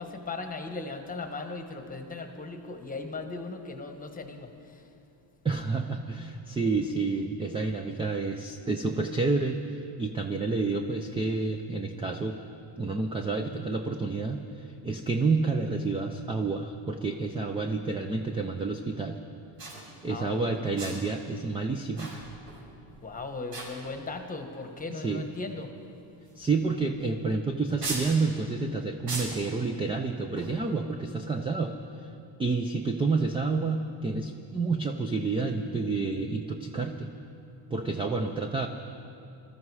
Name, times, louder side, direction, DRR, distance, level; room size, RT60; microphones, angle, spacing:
voice 1, 0.0-4.8 20.0-20.5 23.0-25.7, left 3 dB, 15° left, 5 dB, 1.1 m, -38 dB
voice 2, 5.4-12.4 12.8-19.2 20.0-22.2 24.9-25.3 26.4-31.7 32.0-32.1 32.4-37.1 37.7-38.7, right 3 dB, 15° right, 5 dB, 0.3 m, -29 dB
sound 1, 18.2-18.3 19.3-19.4 19.6-19.8 20.7-21.2 22.0-22.6 22.9-23.1 23.5-24.2 24.9-25.0 26.3-26.5 26.8-26.9 27.8-28.2 29.1-29.5 30.3-30.6, right 2 dB, 70° right, 5.1 m, -37 dB
22.0 x 13.5 x 4.8 m, 2.6 s
cardioid pair, 160°, 48 cm